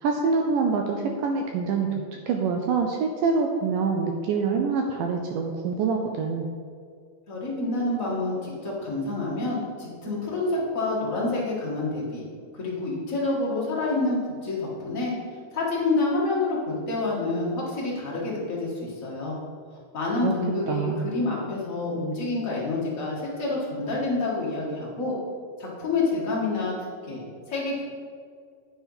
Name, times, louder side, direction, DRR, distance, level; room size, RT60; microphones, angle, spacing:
voice 1, 0.0-6.5 20.2-20.3 20.7-21.1, right 5 dB, 80° right, 2 dB, 1.9 m, -25 dB
voice 2, 7.3-12.2 12.5-15.1 15.5-19.4 19.9-25.1 25.6-26.7 27.0-27.8, left 2 dB, 50° left, -6 dB, 0.9 m, -28 dB
10.0 x 4.5 x 5.6 m, 2.1 s
omnidirectional pair, 4.4 m